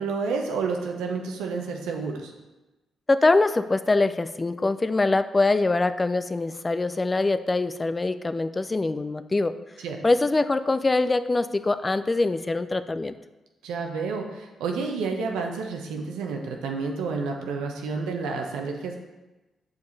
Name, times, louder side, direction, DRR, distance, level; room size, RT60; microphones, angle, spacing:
voice 1, 0.0-2.3 9.8-10.0 13.6-18.9, right 4 dB, 90° right, 2 dB, 0.8 m, -30 dB
voice 2, 3.1-9.5 10.0-13.1, left 3 dB, 25° left, 11 dB, 0.4 m, -23 dB
6.9 x 5.2 x 4.0 m, 1.1 s
supercardioid pair, 60°, 0 cm